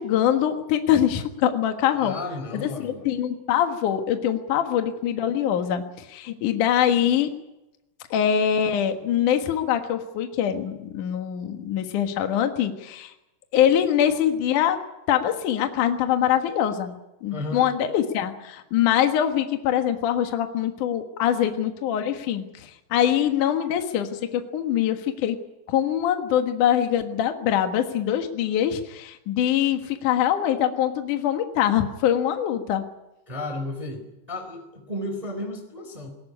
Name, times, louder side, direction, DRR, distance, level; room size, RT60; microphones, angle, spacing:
voice 1, 0.0-2.2 2.5-7.3 8.1-13.1 13.5-14.8 15.1-16.9 17.2-25.4 25.7-32.8, left 10 dB, 70° left, 6 dB, 1.9 m, -23 dB
voice 2, 1.9-3.1 17.3-17.6 33.3-36.1, left 2 dB, 10° right, 4 dB, 3.2 m, -33 dB
21.0 x 17.5 x 9.8 m, 0.92 s
omnidirectional pair, 6.0 m